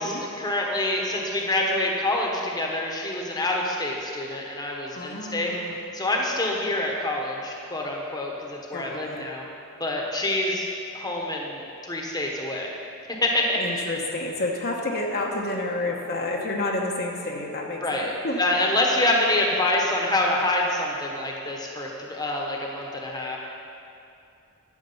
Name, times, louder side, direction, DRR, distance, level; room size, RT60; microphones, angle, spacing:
voice 1, 0.0-5.6 5.9-9.4 9.8-10.7 10.9-12.7 13.2-13.9 17.8-18.1 18.4-23.4, left 1 dB, 20° left, -1 dB, 1.2 m, -26 dB
voice 2, 4.9-5.8 8.7-9.3 13.6-18.4, left 2 dB, 45° left, -1 dB, 1.1 m, -30 dB
12.0 x 7.5 x 5.6 m, 2.6 s
head